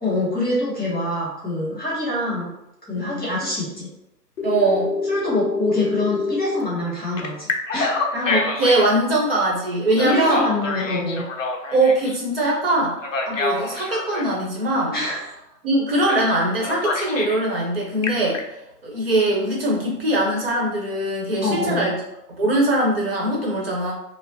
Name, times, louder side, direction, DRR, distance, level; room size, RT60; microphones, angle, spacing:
voice 1, 0.0-2.5 2.9-3.9 5.0-8.1 9.9-11.2 14.9-15.4 21.4-21.9, left 1 dB, ahead, -28 dB, 0.7 m, -25 dB
Telephone, 4.4-6.6 7.2-8.9 9.9-12.2 13.0-14.3 16.1-16.3 16.6-17.4 17.8-18.4, left 3 dB, 50° left, 0.6 m, -26 dB
voice 2, 4.4-4.9 8.1-10.4 11.7-13.0 13.3-14.9 15.6-18.4 18.8-22.0 22.4-23.9, right 1 dB, 35° right, -3 dB, 0.9 m, -21 dB
5.5 x 2.1 x 2.7 m, 0.87 s
hypercardioid pair, 165°, 49 cm